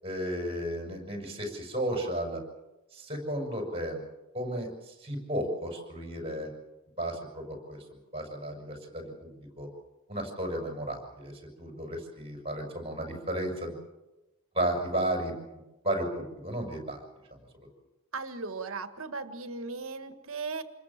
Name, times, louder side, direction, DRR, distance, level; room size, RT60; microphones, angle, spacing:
voice 1, 0.0-2.4 2.9-4.0 4.3-6.5 7.0-7.8 8.1-9.7 10.1-11.3 11.6-13.7 14.5-15.3 15.8-17.0 17.3-17.4, right 1 dB, 25° right, 2 dB, 6.8 m, -33 dB
voice 2, 18.1-20.6, right 4 dB, 65° right, 9 dB, 1.8 m, -37 dB
27.5 x 21.5 x 7.4 m, 1.0 s
head